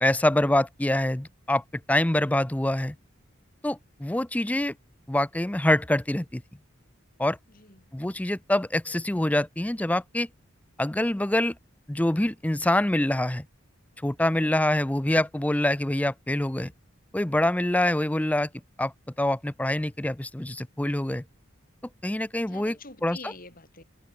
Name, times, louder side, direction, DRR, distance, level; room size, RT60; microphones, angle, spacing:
voice 1, 0.0-3.0 3.6-4.7 5.1-6.4 7.2-7.4 7.9-10.3 10.8-11.5 11.9-13.4 14.0-16.7 17.1-18.5 18.8-18.9 19.2-21.2 22.0-22.8 23.0-23.2, left 1 dB, 5° left, 0.5 m, -25 dB
voice 2, 7.5-7.9 22.4-23.8, left 3 dB, 40° left, 6.4 m, -47 dB
head